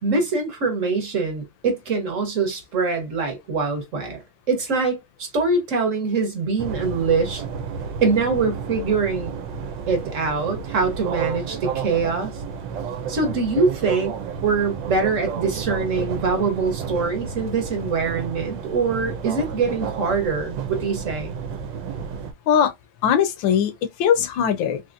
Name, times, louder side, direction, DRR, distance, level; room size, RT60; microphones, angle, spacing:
voice 1, 0.0-4.2 4.5-7.4 8.0-9.3 9.9-12.3 13.1-21.3, right 4 dB, 45° right, 1.2 m, -23 dB
sound 1, 6.6-22.3, right 6 dB, 70° right, 1.3 m, -31 dB
voice 2, 23.0-24.8, left 8 dB, 75° left, 1.4 m, -20 dB
4.2 x 2.9 x 2.5 m
omnidirectional pair, 2.2 m